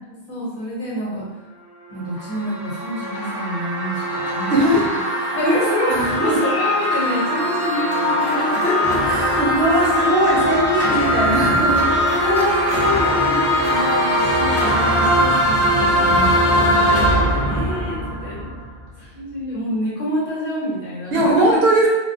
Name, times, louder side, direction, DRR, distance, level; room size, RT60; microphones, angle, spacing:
voice 1, 0.1-1.3 1.9-4.8 5.3-9.2 12.1-18.5 19.0-21.6, equal, 55° left, -8 dB, 1.1 m, -26 dB
sound 1, 1.9-18.9, equal, 30° left, 0.6 m, -20 dB
voice 2, 4.5-4.9 5.9-6.4 9.1-11.9 21.1-21.9, right 1 dB, 75° right, -3 dB, 0.8 m, -19 dB
2.3 x 2.1 x 2.6 m, 1.1 s
omnidirectional pair, 1.1 m